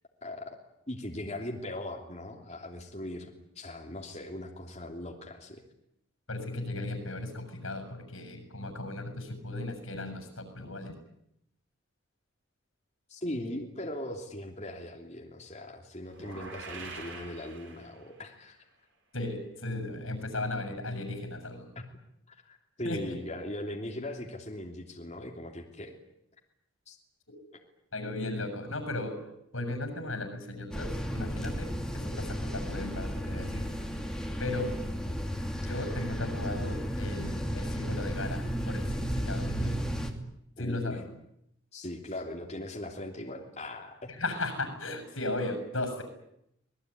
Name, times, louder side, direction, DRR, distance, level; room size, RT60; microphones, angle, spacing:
voice 1, 0.2-0.6 0.9-5.6 13.1-18.6 22.3-25.9 26.9-27.0 40.6-41.0 41.7-44.1, left 1 dB, 35° left, 0 dB, 3.1 m, -39 dB
voice 2, 6.3-11.0 19.1-21.7 22.8-23.2 27.9-29.2 29.5-33.7 34.4-34.8 35.6-39.9 40.6-41.1 44.1-46.0, left 2 dB, 80° left, 9 dB, 7.0 m, -36 dB
sound 1, 16.1-18.3, right 3 dB, 65° right, 7.9 m, -45 dB
sound 2, 30.7-40.1, equal, 5° left, 2.7 m, -33 dB
26.5 x 20.0 x 9.7 m, 0.79 s
head